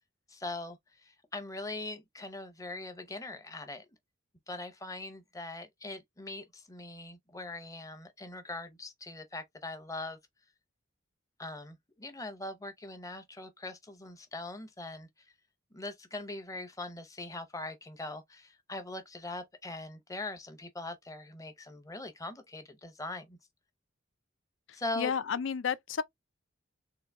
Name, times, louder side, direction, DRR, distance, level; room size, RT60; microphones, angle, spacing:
voice 1, 0.3-3.9 4.5-10.2 11.4-15.3 15.7-23.4 24.7-25.2, left 2 dB, 15° left, 0.8 m, -41 dB
voice 2, 25.0-26.0, left 7 dB, 65° left, 0.5 m, -31 dB
3.9 x 2.6 x 3.3 m
head